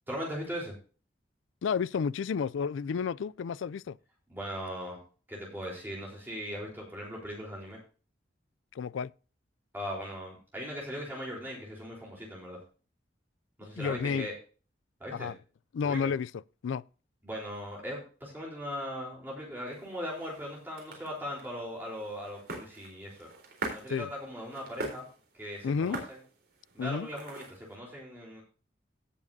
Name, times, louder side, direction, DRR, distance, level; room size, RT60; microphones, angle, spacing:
voice 1, 0.1-0.7 4.3-5.0 5.3-7.8 9.7-12.6 13.6-14.3 15.0-15.3 15.8-16.1 17.2-23.3 23.7-25.1 25.3-26.2 26.7-28.4, equal, 10° right, 3.7 m, -39 dB
voice 2, 1.6-4.0 8.7-9.1 13.8-14.3 15.1-15.4 15.7-16.3 16.6-16.8 23.9-24.1 25.6-26.0 26.8-27.1, left 6 dB, 90° left, 0.4 m, -31 dB
sound 1, 19.7-27.8, right 2 dB, 55° right, 3.9 m, -44 dB
17.0 x 7.3 x 2.7 m
head